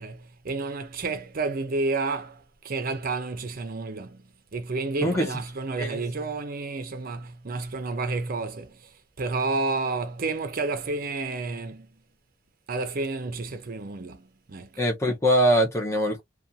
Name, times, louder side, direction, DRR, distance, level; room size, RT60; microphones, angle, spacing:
voice 1, 0.0-4.2 4.5-8.9 9.2-11.9 12.7-14.7, right 3 dB, 45° right, 0.5 m, -30 dB
voice 2, 14.8-16.2, equal, 15° left, 0.6 m, -22 dB
2.5 x 2.3 x 2.7 m
head